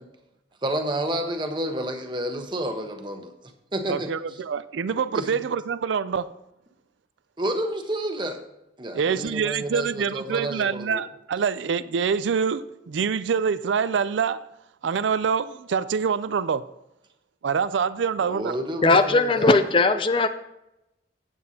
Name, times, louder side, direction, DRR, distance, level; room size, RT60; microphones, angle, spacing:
voice 1, 0.6-3.3 3.7-4.1 5.1-5.4 7.4-8.4 8.8-11.0 18.2-19.6, right 1 dB, 25° right, 1.0 m, -30 dB
voice 2, 3.9-6.3 8.9-14.4 14.8-16.6 17.4-18.6, right 6 dB, 85° right, 0.4 m, -25 dB
voice 3, 18.8-20.3, left 3 dB, 30° left, 0.4 m, -19 dB
15.0 x 7.9 x 2.8 m
head